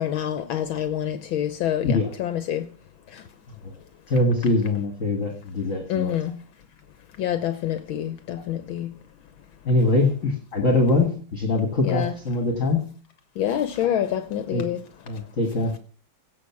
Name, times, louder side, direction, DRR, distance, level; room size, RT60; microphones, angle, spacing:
voice 1, 0.0-2.7 5.9-6.4 7.2-8.9 11.8-12.1 13.4-14.8, left 10 dB, 70° left, 1.6 m, -26 dB
voice 2, 4.1-6.2 9.7-12.8 14.5-14.6 15.1-15.7, left 2 dB, 40° left, 2.0 m, -23 dB
16.5 x 6.3 x 7.2 m
omnidirectional pair, 2.3 m